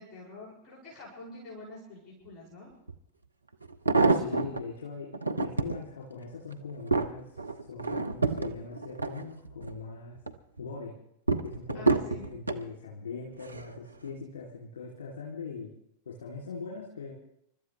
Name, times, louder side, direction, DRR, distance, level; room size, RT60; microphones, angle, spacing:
voice 1, 0.0-2.8 11.7-12.3, left 2 dB, 25° left, -5 dB, 6.0 m, -46 dB
sound 1, 2.9-3.0 3.6-4.6 5.1-5.8 6.3-9.8 10.2-10.6 11.3-12.6 13.4-13.8 14.1-14.2, right 3 dB, 85° right, 0.8 m, -28 dB
voice 2, 4.1-5.1 5.4-10.2 10.6-10.9 11.4-15.7 16.0-17.1, left 4 dB, 60° left, -3 dB, 2.9 m, -41 dB
28.5 x 13.0 x 3.3 m, 0.75 s
figure-of-eight pair, 90°, 0 cm